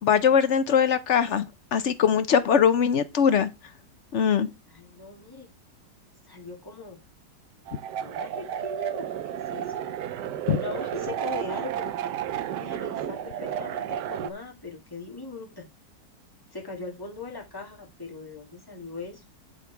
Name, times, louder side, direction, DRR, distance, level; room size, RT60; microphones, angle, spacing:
voice 1, 0.0-3.5 4.1-4.5 10.5-10.6, left 7 dB, 60° left, 0.8 m, -21 dB
voice 2, 4.7-5.5 6.2-7.0 8.0-9.2 9.5-9.8 10.5-11.9 12.6-15.7 16.5-19.2, left 3 dB, 15° left, 2.1 m, -39 dB
sound 1, 7.7-14.3, right 10 dB, 80° right, 1.3 m, -32 dB
11.0 x 4.1 x 4.6 m
omnidirectional pair, 1.8 m